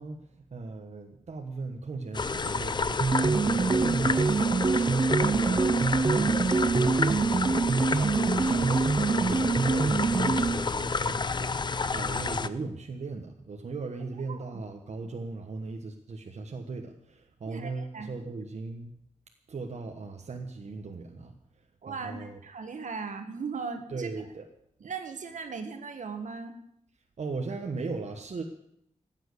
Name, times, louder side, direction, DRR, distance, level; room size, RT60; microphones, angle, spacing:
voice 1, 0.0-18.9 19.5-21.3 21.9-22.4 23.9-24.5 27.2-28.4, right 3 dB, 60° right, 3 dB, 1.3 m, -38 dB
sound 1, 2.1-12.5, left 4 dB, 35° left, 0.6 m, -30 dB
sound 2, 3.0-10.7, right 4 dB, 30° right, 0.5 m, -25 dB
voice 2, 14.3-14.6 17.5-18.1 21.8-24.1 24.8-26.6, right 5 dB, 75° right, 7 dB, 1.8 m, -38 dB
15.0 x 9.1 x 8.2 m, 0.74 s
wide cardioid pair, 125°, 13 cm